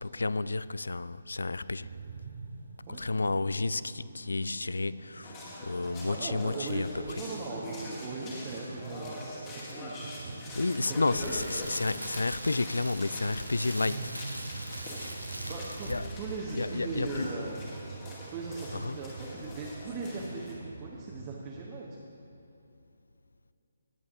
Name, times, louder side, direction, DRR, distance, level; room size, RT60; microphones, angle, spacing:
voice 1, 0.0-1.9 3.0-6.9 10.6-14.1 15.9-16.1 16.6-17.3 18.8-18.9, left 3 dB, 65° left, 0.3 m, -31 dB
sound 1, 1.8-21.7, right 4 dB, 45° right, 0.8 m, -45 dB
voice 2, 2.9-3.5 6.0-11.4 15.5-15.9 16.2-17.6 18.3-22.0, right 3 dB, 20° right, 1.1 m, -39 dB
sound 2, 5.2-20.5, left 1 dB, 20° left, 2.0 m, -44 dB
Crackle, 10.8-16.3 16.5-16.7, equal, 90° right, 1.2 m, -41 dB
18.5 x 7.7 x 3.7 m
figure-of-eight pair, 140°, 0 cm